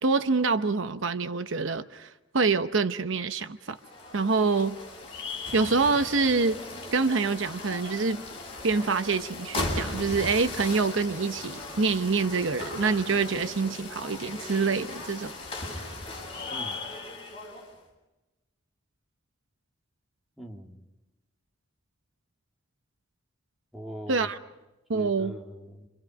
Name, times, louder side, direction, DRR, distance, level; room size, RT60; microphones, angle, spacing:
voice 1, 0.0-3.8 4.1-4.8 5.5-6.6 6.9-8.2 8.6-15.3 24.1-24.4 24.9-25.3, right 4 dB, 65° right, 0.8 m, -26 dB
sound 1, 3.7-17.7, left 2 dB, 25° left, 7.1 m, -37 dB
voice 2, 16.5-16.8 20.4-20.8 23.7-24.3 24.9-25.9, equal, ahead, 2.4 m, -41 dB
29.5 x 25.5 x 5.3 m
head